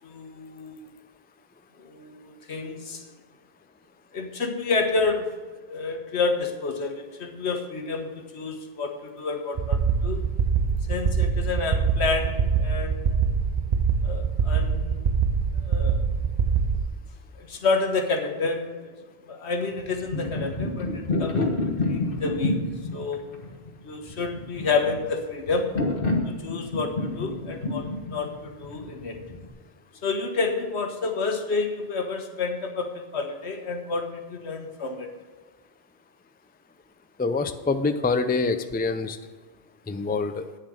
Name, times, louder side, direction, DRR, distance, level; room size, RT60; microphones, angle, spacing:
voice 1, 0.0-0.8 1.8-3.0 4.1-5.3 5.7-10.2 10.9-13.0 14.0-15.2 15.6-16.0 17.4-18.9 19.3-22.6 22.9-23.2 23.8-25.7 26.2-29.2 30.0-35.1, left 4 dB, 85° left, 4 dB, 1.6 m, -29 dB
sound 1, 9.6-16.8, right 6 dB, 45° right, 0.7 m, -24 dB
sound 2, 19.8-29.5, left 2 dB, 55° left, 1.7 m, -29 dB
voice 2, 37.2-39.2 39.9-40.5, left 3 dB, 15° left, 9 dB, 0.4 m, -25 dB
9.4 x 7.5 x 6.3 m, 1.4 s
omnidirectional pair, 1.1 m